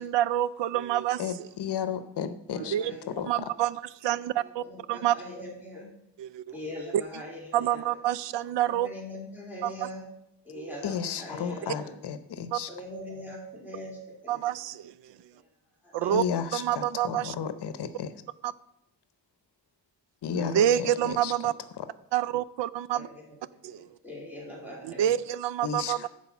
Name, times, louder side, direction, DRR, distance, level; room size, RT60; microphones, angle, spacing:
voice 1, 0.0-1.5 2.6-2.9 3.3-5.2 6.2-6.4 7.1-7.2 7.5-8.9 9.6-9.7 10.5-10.7 12.5-12.6 14.3-14.9 15.9-16.2 16.5-17.3 18.4-18.5 20.3-21.5 22.1-23.1 23.6-23.9 24.8-26.1, right 12 dB, 70° right, 18 dB, 0.5 m, -27 dB
voice 2, 1.2-2.8 3.2-3.3 10.8-12.7 16.1-18.1 20.2-21.3 21.8-21.9 25.6-26.1, left 8 dB, 65° left, 11 dB, 0.8 m, -33 dB
voice 3, 2.5-3.2 4.4-5.9 6.5-7.8 8.7-10.0 10.4-11.9 12.7-14.4 15.8-16.3 20.7-21.0 22.9-25.1 26.0-26.1, left 1 dB, 5° right, -2 dB, 2.7 m, -42 dB
10.5 x 4.6 x 7.1 m, 0.78 s
wide cardioid pair, 145°, 44 cm